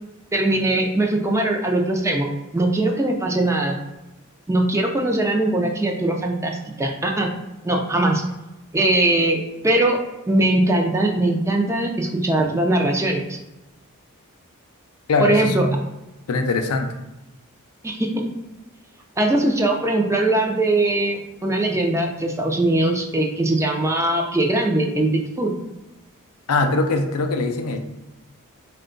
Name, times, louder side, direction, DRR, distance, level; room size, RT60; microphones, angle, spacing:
voice 1, 0.3-3.8 4.5-7.3 7.6-8.2 8.7-10.0 10.3-13.4 15.2-15.7 17.8-18.2 19.2-25.5, right 1 dB, 15° right, 1 dB, 0.4 m, -21 dB
voice 2, 15.1-15.8 16.3-16.9 26.5-27.8, left 3 dB, 85° left, 6 dB, 0.5 m, -21 dB
4.4 x 2.2 x 3.8 m, 0.97 s
head